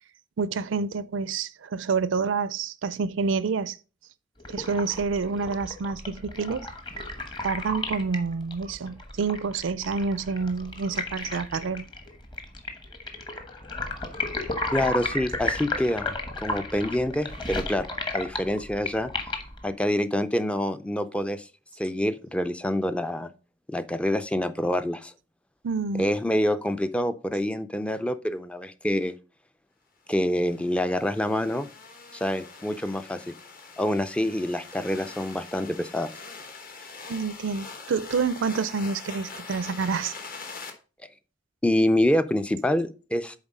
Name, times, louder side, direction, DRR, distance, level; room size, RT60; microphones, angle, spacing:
voice 1, 0.4-3.8 4.5-6.7 7.4-11.9 25.6-26.1 37.1-40.1, right 5 dB, 80° right, 0.4 m, -28 dB
sound 1, 4.4-19.7, left 2 dB, 25° left, 1.1 m, -34 dB
voice 2, 14.7-16.1 16.4-17.9 18.1-19.1 19.6-21.5 21.8-23.3 23.7-25.1 26.0-29.1 30.1-31.7 32.1-33.3 33.8-36.1 41.6-43.4, left 1 dB, 5° left, 0.4 m, -26 dB
sound 2, 30.3-40.7, left 4 dB, 50° left, 1.2 m, -43 dB
7.1 x 4.3 x 5.3 m
head